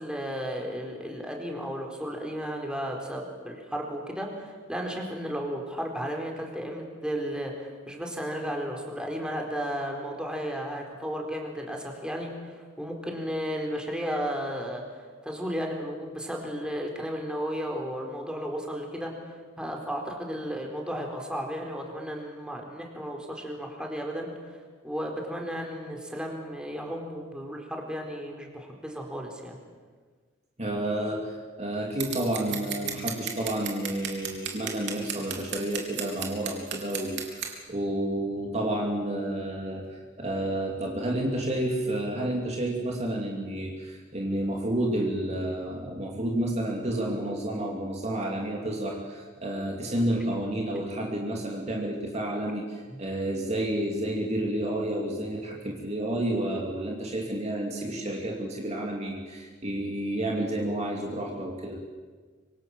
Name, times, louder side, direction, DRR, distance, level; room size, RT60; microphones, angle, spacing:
voice 1, 0.0-14.8 15.2-19.1 19.6-24.6 24.8-29.6 52.9-53.0, equal, 5° right, 1 dB, 4.2 m, -34 dB
voice 2, 30.6-61.8, right 1 dB, 35° right, 0 dB, 2.8 m, -30 dB
Scissors, 32.0-37.5, right 8 dB, 60° right, 3.5 m, -34 dB
25.5 x 25.0 x 7.4 m, 1.5 s
head